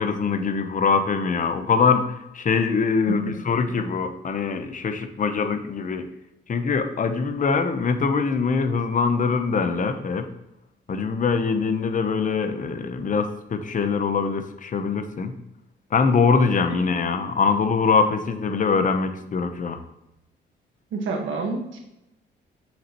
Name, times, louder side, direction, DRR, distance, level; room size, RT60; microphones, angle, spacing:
voice 1, 0.0-6.1 6.5-10.3 10.9-15.3 15.9-19.8, left 5 dB, 40° left, 9 dB, 0.8 m, -23 dB
voice 2, 20.9-21.8, right 4 dB, 75° right, 2 dB, 1.5 m, -28 dB
7.1 x 6.4 x 3.0 m, 0.89 s
cardioid pair, 90°, 20 cm